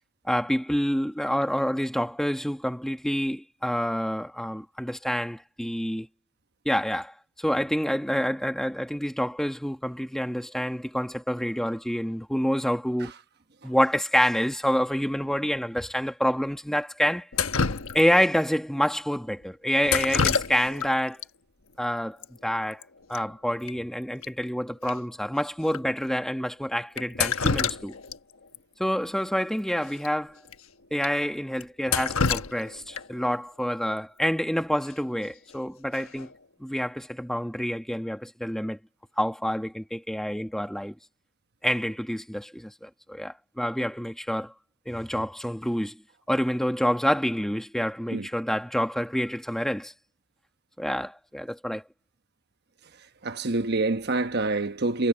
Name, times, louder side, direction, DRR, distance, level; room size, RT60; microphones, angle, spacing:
voice 1, 0.2-6.1 6.6-13.1 13.6-17.3 17.9-21.2 21.8-22.8 23.1-27.9 28.8-30.4 30.9-36.3 36.6-38.8 39.2-40.9 41.6-44.5 44.9-46.0 46.3-49.9 50.8-51.8, equal, ahead, 1.2 m, -27 dB
Drip, 17.3-18.3 19.8-20.9 21.2-21.3 22.2-22.3 22.6-22.8 23.1-23.2 23.7-23.8 24.2-24.3 24.9-25.0 25.7-25.8 27.0-28.2 28.5-28.6 30.0-30.1 30.5-30.6 31.0-31.1 31.6-33.2 35.2-35.5 35.9-36.3, left 5 dB, 70° left, 1.2 m, -27 dB
voice 2, 53.2-55.1, right 2 dB, 50° right, 1.1 m, -26 dB
head